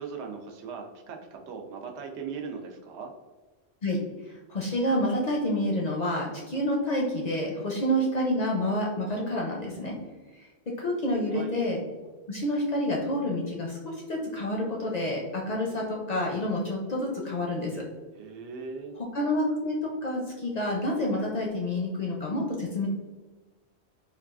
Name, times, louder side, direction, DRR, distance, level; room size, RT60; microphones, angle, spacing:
voice 1, 0.0-3.1 11.3-11.5 18.1-19.0, right 5 dB, 90° right, 3 dB, 0.9 m, -39 dB
voice 2, 4.5-9.9 10.8-11.8 12.3-17.8 19.1-19.8 20.0-22.9, left 1 dB, 55° left, -2 dB, 0.5 m, -28 dB
3.8 x 2.3 x 2.3 m, 1.3 s
omnidirectional pair, 1.1 m